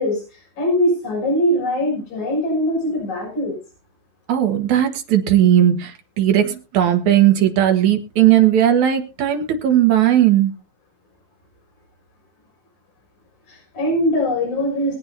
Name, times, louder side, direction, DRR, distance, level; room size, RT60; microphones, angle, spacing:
voice 1, 0.0-3.6 13.5-15.0, equal, 45° left, -1 dB, 7.5 m, -21 dB
voice 2, 4.3-10.5, right 11 dB, 55° right, 5 dB, 2.5 m, -16 dB
22.0 x 8.8 x 2.8 m, 0.31 s
omnidirectional pair, 4.7 m